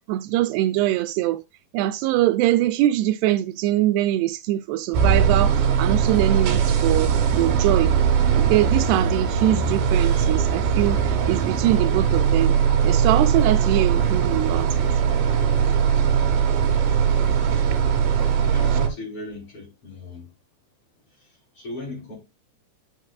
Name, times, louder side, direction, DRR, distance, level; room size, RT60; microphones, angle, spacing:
voice 1, 0.1-1.4 1.7-7.9 8.4-12.6 12.8-14.9, right 14 dB, 85° right, 2.6 m, -23 dB
sound 1, 4.9-18.9, right 7 dB, 65° right, 2.8 m, -20 dB
voice 2, 18.5-20.3 21.6-22.2, left 2 dB, 35° left, 4.2 m, -36 dB
11.5 x 6.3 x 2.4 m
omnidirectional pair, 4.7 m